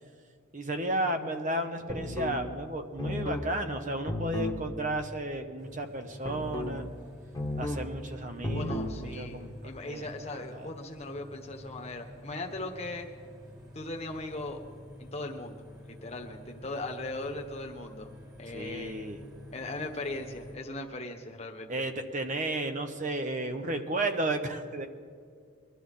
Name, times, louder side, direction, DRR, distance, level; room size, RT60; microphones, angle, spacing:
voice 1, 0.5-6.8 7.6-9.5 9.9-10.1 10.3-10.7 18.5-19.2 21.7-24.9, right 1 dB, 35° right, 7 dB, 0.9 m, -33 dB
sound 1, 1.9-2.4 3.0-3.5 4.1-4.6 6.2-6.8 7.3-7.9 8.4-8.9, left 1 dB, 15° left, 1.3 m, -33 dB
sound 2, 5.6-20.5, equal, 15° right, 1.9 m, -49 dB
voice 2, 8.5-13.1 13.7-14.6 15.0-18.1 18.4-19.1 19.5-21.7, left 2 dB, 30° left, 2 dB, 1.3 m, -39 dB
22.5 x 12.5 x 3.7 m, 2.1 s
head